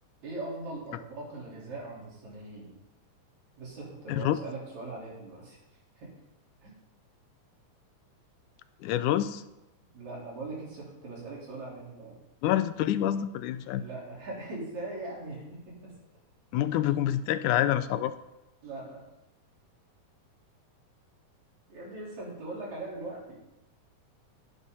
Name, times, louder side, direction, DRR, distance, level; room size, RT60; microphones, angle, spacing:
voice 1, 0.2-2.7 3.6-5.6 6.0-6.1 6.6-6.7 9.9-12.2 13.7-16.0 17.1-17.2 18.6-19.1 21.7-23.4, right 2 dB, 65° right, -5 dB, 5.5 m, -40 dB
voice 2, 4.1-4.4 8.8-9.4 12.4-13.8 16.5-18.1, left 12 dB, 85° left, 13 dB, 2.1 m, -27 dB
16.5 x 9.6 x 4.2 m, 0.92 s
omnidirectional pair, 3.6 m